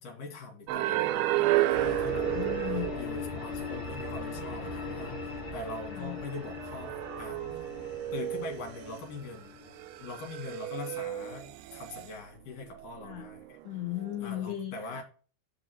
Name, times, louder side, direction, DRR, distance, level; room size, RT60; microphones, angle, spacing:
voice 1, 0.0-2.3 3.0-7.7 8.1-9.5 10.0-13.6 14.2-15.0, left 3 dB, 55° left, 4.0 m, -42 dB
sound 1, 0.7-3.4 3.7-3.8 5.5-5.6 6.2-9.2 9.8-12.1 13.0-13.6 13.9-14.2, right 15 dB, 85° right, 2.7 m, -32 dB
sound 2, 1.7-10.6, left 3 dB, 35° left, 3.4 m, -39 dB
voice 2, 1.8-2.9 5.9-6.2 13.0-13.3 13.6-15.0, left 14 dB, 80° left, 1.7 m, -37 dB
6.5 x 6.2 x 6.4 m
omnidirectional pair, 4.7 m